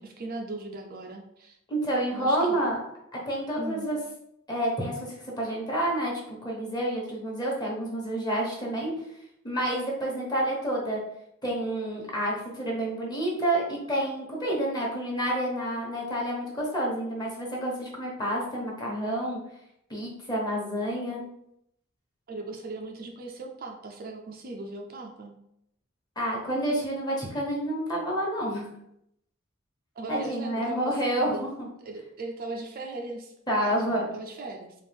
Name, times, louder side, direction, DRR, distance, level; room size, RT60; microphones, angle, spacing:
voice 1, 0.0-1.6 2.1-2.6 3.6-3.9 22.3-25.4 30.0-31.4 31.8-33.3 33.6-34.8, right 2 dB, 45° right, 2 dB, 0.4 m, -38 dB
voice 2, 1.7-2.8 3.3-4.0 4.5-8.9 9.4-11.0 11.4-19.4 19.9-21.2 26.2-28.7 30.1-31.7 33.5-34.1, right 1 dB, 20° left, -3 dB, 1.1 m, -29 dB
4.2 x 2.4 x 3.4 m, 0.77 s
head